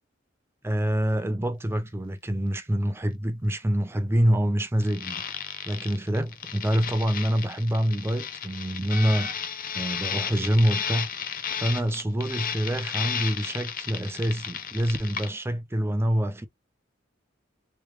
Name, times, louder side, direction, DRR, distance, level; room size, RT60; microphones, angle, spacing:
voice 1, 0.6-5.2 5.7-9.3 9.7-11.1 11.6-16.5, equal, 15° right, 0.4 m, -26 dB
sound 1, 4.8-15.3, left 7 dB, 50° left, 0.6 m, -33 dB
3.2 x 3.0 x 3.1 m
head